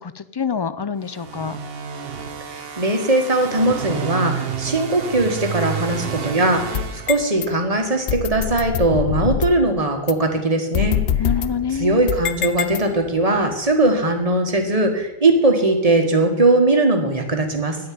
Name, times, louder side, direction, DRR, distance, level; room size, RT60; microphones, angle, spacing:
voice 1, 0.0-1.6 11.2-12.1, left 6 dB, 35° left, 14 dB, 0.4 m, -26 dB
sound 1, 1.1-7.7, right 7 dB, 70° right, 1.2 m, -30 dB
voice 2, 2.5-10.9 11.8-17.8, right 2 dB, 35° right, 4 dB, 1.7 m, -19 dB
sound 2, 6.6-7.5 8.1-9.7 10.1-10.2 10.7-13.2, left 9 dB, 75° left, 0.9 m, -25 dB
9.4 x 7.7 x 9.4 m, 1.0 s
omnidirectional pair, 1.0 m